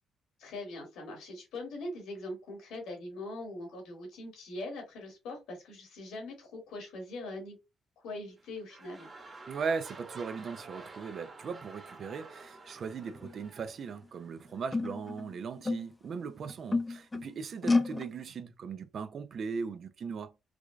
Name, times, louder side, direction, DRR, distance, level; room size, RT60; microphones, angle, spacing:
voice 1, 0.4-7.6 8.0-9.1, left 2 dB, 90° left, 2.2 m, -42 dB
S Short Laughter - alt staggered, 8.2-14.6 15.3-15.4, right 3 dB, 30° right, 1.4 m, -50 dB
voice 2, 9.5-20.3, right 5 dB, 55° right, 0.6 m, -38 dB
sound 1, 12.9-13.3 14.0-14.1 14.7-16.1 16.5-17.3 17.6-18.1, left 3 dB, 20° left, 0.6 m, -30 dB
4.7 x 2.4 x 2.3 m
cardioid pair, 90°, 0 cm